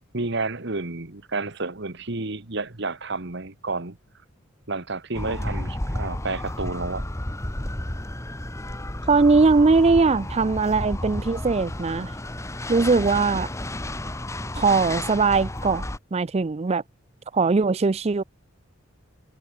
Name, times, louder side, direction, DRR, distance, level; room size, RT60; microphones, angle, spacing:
voice 1, 0.1-4.0 4.7-7.0, right 3 dB, 60° right, 1.7 m, -30 dB
sound 1, 5.1-16.0, left 1 dB, 15° left, 1.2 m, -32 dB
voice 2, 9.1-12.1 12.7-13.5 14.5-15.8 16.1-16.8 17.3-18.2, right 4 dB, 30° right, 0.4 m, -20 dB
head